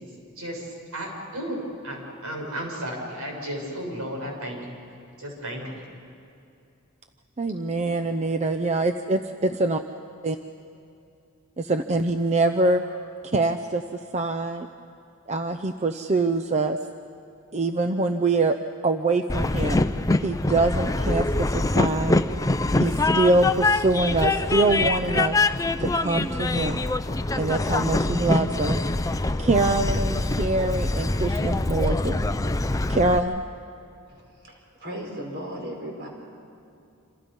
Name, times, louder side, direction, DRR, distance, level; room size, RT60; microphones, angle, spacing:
voice 1, 0.4-4.8 5.2-5.8, equal, 80° right, 0 dB, 6.5 m, -34 dB
voice 2, 7.4-9.8 10.2-10.4 11.6-12.8 13.3-13.8 14.1-14.7 15.3-16.8 17.5-18.6 18.8-19.8 20.2-22.2 22.8-25.4 25.8-26.8 27.3-28.8 29.4-32.2 32.9-33.4, right 2 dB, 30° right, 7 dB, 0.6 m, -24 dB
Train, 19.3-33.2, left 2 dB, 15° left, 0.5 m, -24 dB
voice 3, 34.4-36.1, equal, 50° right, 0 dB, 5.1 m, -36 dB
28.0 x 27.5 x 5.5 m, 2.6 s
head